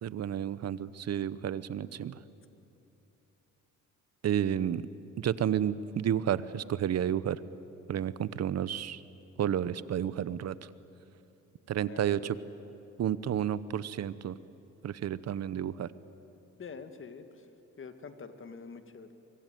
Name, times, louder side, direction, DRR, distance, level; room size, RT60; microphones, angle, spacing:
voice 1, 0.0-2.1 4.2-4.8 5.2-7.4 7.9-9.0 9.4-10.5 11.7-12.4 13.0-14.3 14.8-15.9, right 10 dB, 55° right, 17 dB, 0.9 m, -31 dB
voice 2, 11.8-12.3 16.6-17.5 17.8-19.1, left 5 dB, 40° left, 9 dB, 2.1 m, -46 dB
24.5 x 24.0 x 9.2 m, 2.9 s
cardioid pair, 90°, 30 cm